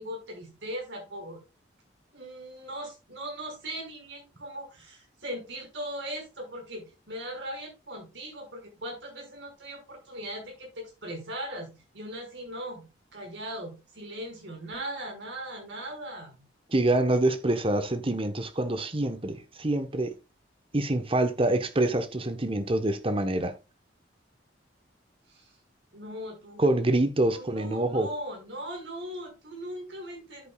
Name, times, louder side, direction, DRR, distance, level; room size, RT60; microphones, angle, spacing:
voice 1, 0.0-1.4 2.1-16.5 25.3-25.5 25.9-26.7 27.3-30.5, right 1 dB, 70° right, 5.7 m, -39 dB
voice 2, 16.7-20.2 20.7-23.5 26.6-28.1, right 1 dB, 30° right, 1.2 m, -26 dB
10.5 x 9.0 x 2.4 m
head